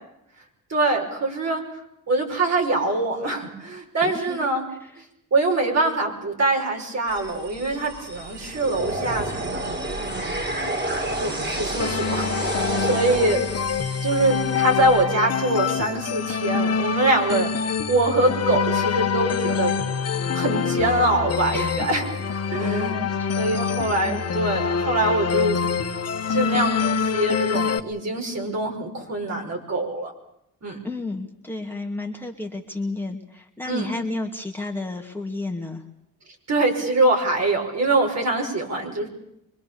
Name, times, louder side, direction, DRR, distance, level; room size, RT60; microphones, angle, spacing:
voice 1, 0.7-1.6 2.1-4.7 5.3-10.4 11.0-13.5 14.0-19.7 20.3-22.1 22.5-23.0 23.4-25.6 26.3-30.1 30.6-30.8 33.6-33.9 36.5-39.1, right 2 dB, 50° right, 2 dB, 5.9 m, -24 dB
voice 2, 4.0-5.0 21.5-21.9 22.4-23.3 24.0-24.2 30.8-35.8, left 2 dB, 5° left, 1 dB, 2.5 m, -32 dB
sound 1, 7.1-15.0, right 1 dB, 30° right, 4.2 m, -30 dB
sound 2, 11.8-27.8, left 6 dB, 45° left, 1.5 m, -25 dB
25.0 x 21.0 x 7.0 m, 0.80 s
cardioid pair, 70°, 34 cm